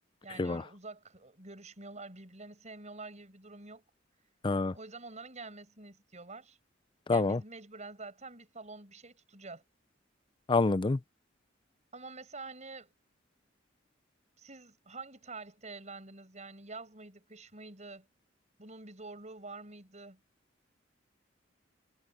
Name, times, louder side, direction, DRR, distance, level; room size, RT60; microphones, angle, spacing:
voice 1, 0.2-3.8 4.7-6.6 7.1-9.6 11.9-12.9 14.4-18.1 18.6-20.2, right 3 dB, 40° right, 7.7 m, -47 dB
voice 2, 4.4-4.7 7.1-7.4 10.5-11.0, left 3 dB, 25° left, 0.4 m, -27 dB
head